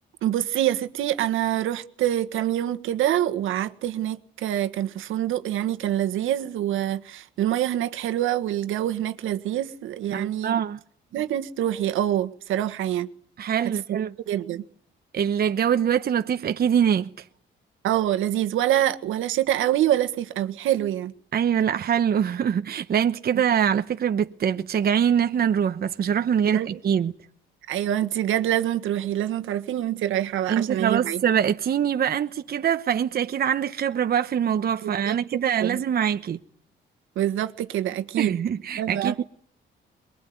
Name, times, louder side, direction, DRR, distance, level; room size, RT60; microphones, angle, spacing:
voice 1, 0.2-10.6 11.1-13.1 13.9-14.6 17.8-21.1 26.4-26.7 27.7-31.2 34.8-35.2 35.6-35.8 37.1-38.4 38.8-39.2, right 12 dB, 85° right, 1.7 m, -25 dB
voice 2, 10.1-10.8 13.4-14.1 15.1-17.1 21.3-27.1 30.5-36.4 38.2-39.2, right 8 dB, 50° right, 1.1 m, -23 dB
23.0 x 22.0 x 9.5 m
cardioid pair, 90°, 20 cm